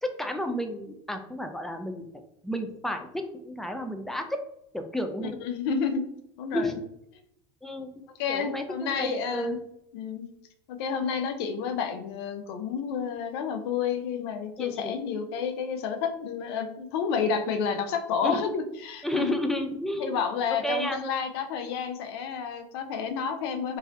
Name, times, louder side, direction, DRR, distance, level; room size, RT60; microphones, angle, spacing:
voice 1, 0.0-4.4 4.7-5.4 6.5-6.8 7.6-7.9 8.3-9.6 14.6-14.9 18.2-18.4 19.0-20.2 20.5-21.0, equal, 5° left, 6 dB, 0.4 m, -32 dB
voice 2, 5.2-6.0 6.4-6.8 8.2-9.6 9.9-10.2 10.7-19.4 20.0-23.8, left 6 dB, 75° left, 7 dB, 0.6 m, -30 dB
3.9 x 2.6 x 2.7 m, 0.76 s
supercardioid pair, 125°, 13 cm